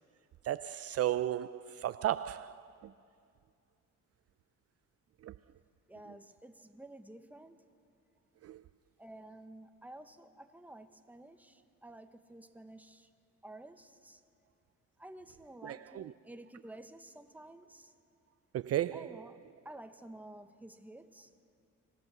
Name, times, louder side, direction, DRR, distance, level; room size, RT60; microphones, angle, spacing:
voice 1, 0.4-2.6 5.2-5.3 8.4-8.6 15.6-16.1 18.5-19.1, right 12 dB, 55° right, 0.4 m, -34 dB
voice 2, 5.9-7.6 9.0-13.1 13.4-14.2 15.0-17.9 18.9-19.4 19.6-21.3, right 1 dB, 5° right, 1.0 m, -51 dB
24.5 x 16.0 x 6.8 m
cardioid pair, 90°, 30 cm